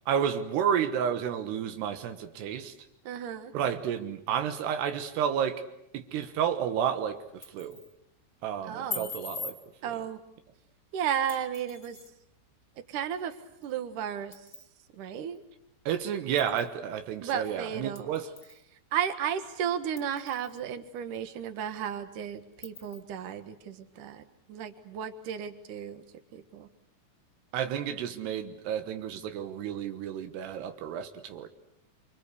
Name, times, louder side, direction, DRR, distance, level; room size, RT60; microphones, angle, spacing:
voice 1, 0.1-2.7 3.5-5.6 5.9-7.8 8.4-9.6 9.9-10.0 15.9-18.3 27.5-31.5, right 8 dB, 90° right, 7 dB, 3.5 m, -31 dB
voice 2, 3.0-3.5 8.6-9.1 9.8-10.2 10.9-12.0 12.9-13.3 13.6-14.3 15.0-15.4 17.2-18.1 18.9-24.2 24.5-26.0 26.3-26.7, right 8 dB, 60° right, 10 dB, 2.8 m, -34 dB
sound 1, 7.2-7.9 8.9-9.6 11.3-12.1 13.6-13.7 14.3-14.7 15.3-15.4 16.4-16.7 17.9-18.6 19.0-19.1 20.0-20.6 21.1-21.2 21.6-21.7 22.6-23.0, left 5 dB, 25° left, 2.2 m, -41 dB
28.0 x 25.5 x 8.4 m, 0.79 s
omnidirectional pair, 4.6 m